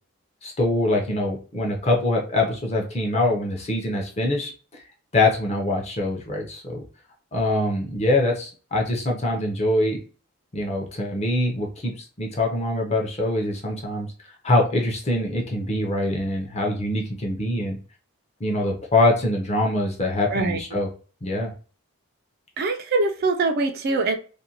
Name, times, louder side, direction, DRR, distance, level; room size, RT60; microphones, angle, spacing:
voice 1, 0.4-4.5 5.1-6.8 7.3-10.0 10.5-14.1 14.4-17.8 18.4-20.9 21.2-21.5, left 2 dB, 30° left, 1 dB, 0.6 m, -24 dB
voice 2, 20.3-20.8 22.6-24.2, right 3 dB, 45° right, 5 dB, 0.3 m, -23 dB
2.5 x 2.1 x 2.7 m, 0.37 s
head